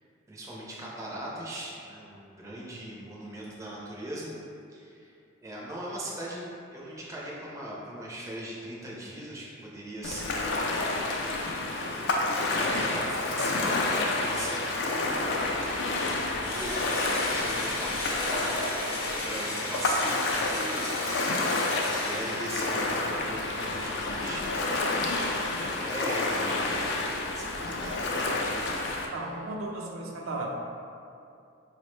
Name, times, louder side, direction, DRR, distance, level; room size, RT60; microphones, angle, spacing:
voice 1, 0.3-4.3 4.7-5.1 5.4-10.7 12.4-18.5 19.2-21.0 21.8-24.5 24.9-26.9 27.1-29.1, right 1 dB, 15° right, -5 dB, 0.4 m, -40 dB
Ocean, 10.0-29.1, left 2 dB, 55° left, 0.3 m, -29 dB
Engine / Drill, 16.4-23.0, left 2 dB, 90° left, 0.6 m, -36 dB
voice 2, 29.1-30.5, right 2 dB, 80° right, 0 dB, 0.4 m, -35 dB
4.2 x 2.1 x 3.0 m, 2.6 s
head